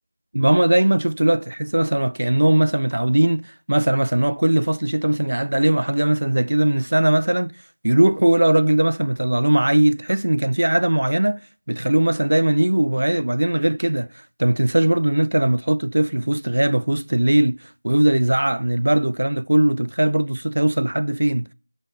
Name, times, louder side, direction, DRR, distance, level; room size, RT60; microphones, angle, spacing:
voice 1, 0.3-7.5 7.8-11.4 11.7-14.1 14.4-21.5, right 1 dB, 75° right, 0.3 m, -19 dB
7.4 x 3.4 x 3.8 m
figure-of-eight pair, 180°, 0 cm